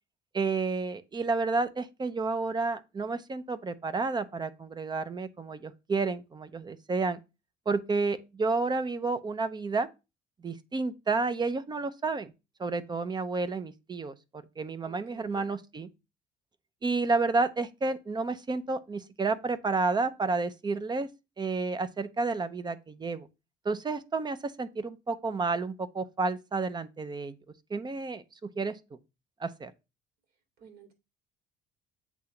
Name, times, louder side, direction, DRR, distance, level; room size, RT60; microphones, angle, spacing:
voice 1, 0.3-7.2 7.7-9.9 10.4-12.3 12.6-15.9 16.8-21.1 21.4-23.3 23.6-27.3 27.7-28.8 29.4-29.7, right 3 dB, 25° right, 0.6 m, -30 dB
voice 2, 14.8-15.5 30.6-30.9, right 7 dB, 65° right, 2.6 m, -52 dB
8.0 x 2.9 x 5.7 m
cardioid pair, 110°, 17 cm